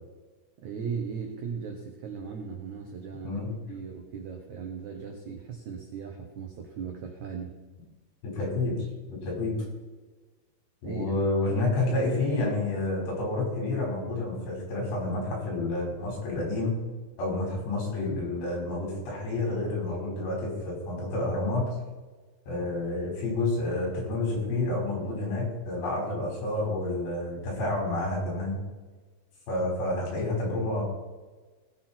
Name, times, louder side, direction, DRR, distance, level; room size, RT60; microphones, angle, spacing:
voice 1, 0.6-3.4 3.7-7.6 10.8-11.2, right 6 dB, 80° right, 2 dB, 1.7 m, -37 dB
voice 2, 3.2-3.5 8.3-8.8 9.1-9.5 10.8-16.7 17.2-21.7 22.5-28.6 29.5-30.8, left 2 dB, 70° left, -2 dB, 6.8 m, -29 dB
18.5 x 8.3 x 4.4 m, 1.3 s
omnidirectional pair, 5.2 m